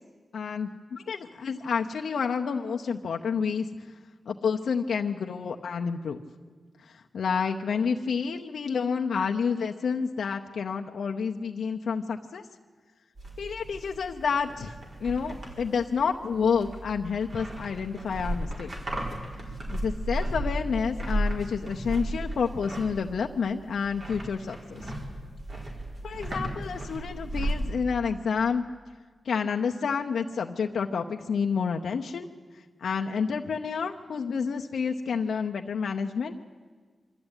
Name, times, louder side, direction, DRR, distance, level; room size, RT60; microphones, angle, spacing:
voice 1, 0.3-3.7 4.3-6.2 6.9-12.4 13.4-14.8 15.0-18.7 19.7-24.8 26.0-28.6 29.2-32.3 32.8-36.4, left 6 dB, 90° left, 3 dB, 0.8 m, -29 dB
sound 1, 13.2-27.7, right 1 dB, 45° right, 4.6 m, -35 dB
24.5 x 13.5 x 9.0 m, 1.4 s
wide cardioid pair, 90°, 0 cm